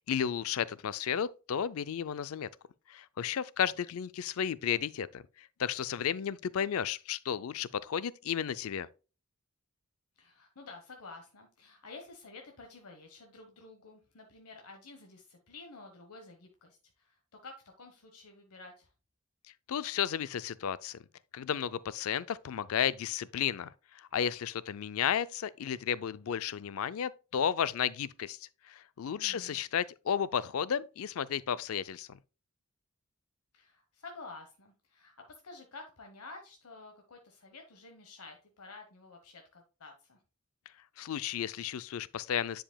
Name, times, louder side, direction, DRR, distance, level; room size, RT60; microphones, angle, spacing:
voice 1, 0.0-2.5 2.9-8.9 19.7-21.0 21.3-32.2 41.0-42.6, left 8 dB, 70° left, 0.4 m, -33 dB
voice 2, 10.2-18.9 29.2-29.6 33.5-40.2, left 3 dB, 90° left, 1.2 m, -51 dB
10.0 x 5.0 x 2.2 m
head